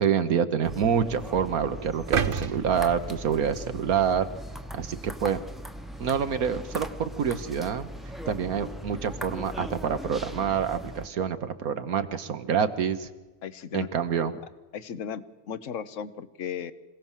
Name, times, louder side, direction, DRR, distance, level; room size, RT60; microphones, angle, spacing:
voice 1, 0.0-4.3 4.7-5.4 6.0-7.9 8.3-13.1 13.7-14.3, right 7 dB, 75° right, 10 dB, 1.6 m, -27 dB
sound 1, 0.6-11.1, equal, ahead, 1.0 m, -39 dB
sound 2, 2.1-4.3 4.8-4.9, right 7 dB, 45° right, 0.9 m, -31 dB
voice 2, 13.4-13.9 14.7-16.7, left 8 dB, 60° left, 14 dB, 1.3 m, -36 dB
26.5 x 17.5 x 7.4 m, 1.2 s
omnidirectional pair, 1.5 m